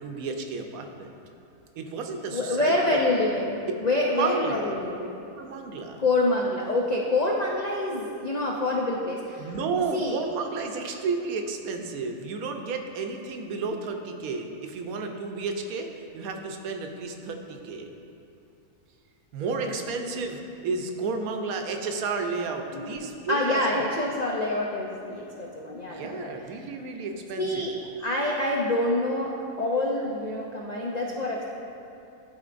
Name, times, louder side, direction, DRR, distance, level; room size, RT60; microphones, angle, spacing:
voice 1, 0.0-1.1 1.8-3.0 4.1-4.6 5.3-6.0 9.4-17.9 19.3-23.8 25.9-27.7, right 4 dB, 80° right, 4 dB, 1.1 m, -32 dB
voice 2, 2.3-5.1 6.0-9.5 9.9-10.2 19.6-19.7 20.0-20.2 22.7-26.3 27.4-27.7 28.0-31.4, left 2 dB, 90° left, -2 dB, 0.3 m, -27 dB
12.5 x 4.3 x 2.5 m, 2.7 s
omnidirectional pair, 1.5 m